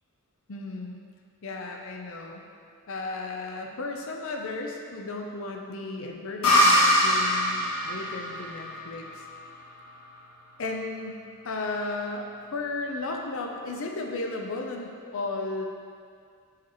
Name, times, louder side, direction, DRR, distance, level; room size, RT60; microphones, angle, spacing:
voice 1, 0.5-1.0 1.4-2.4 2.9-9.2 10.6-15.6, left 3 dB, 65° left, 2 dB, 0.6 m, -34 dB
sound 1, 6.4-10.0, equal, 85° left, 1.6 m, -23 dB
7.2 x 4.9 x 3.1 m, 2.2 s
head